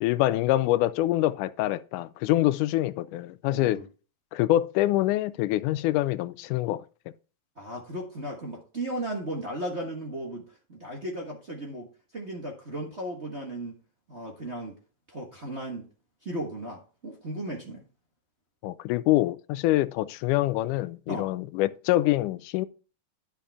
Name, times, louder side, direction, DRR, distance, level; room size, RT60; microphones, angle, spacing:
voice 1, 0.0-3.8 4.3-6.8 18.6-22.7, left 15 dB, 90° left, 2.1 m, -25 dB
voice 2, 3.5-3.8 7.6-11.9 12.1-13.8 14.1-14.8 15.1-15.9 16.2-17.8 21.1-21.3, right 1 dB, 40° right, 0.9 m, -35 dB
10.5 x 7.0 x 3.5 m
omnidirectional pair, 3.5 m